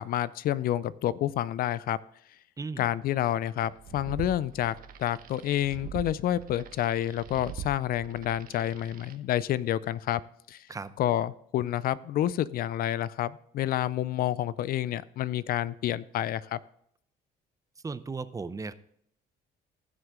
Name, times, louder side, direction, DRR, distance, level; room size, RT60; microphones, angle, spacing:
voice 1, 0.0-2.0 2.8-10.2 10.5-10.7 11.0-16.6, left 12 dB, 60° left, 19 dB, 0.5 m, -29 dB
voice 2, 2.6-2.9 10.7-10.9 17.8-18.7, right 4 dB, 20° right, 14 dB, 0.6 m, -36 dB
creepy space frog, 3.7-9.2, right 7 dB, 55° right, 1.0 m, -43 dB
15.5 x 6.3 x 3.7 m, 0.68 s
cardioid pair, 110°, 17 cm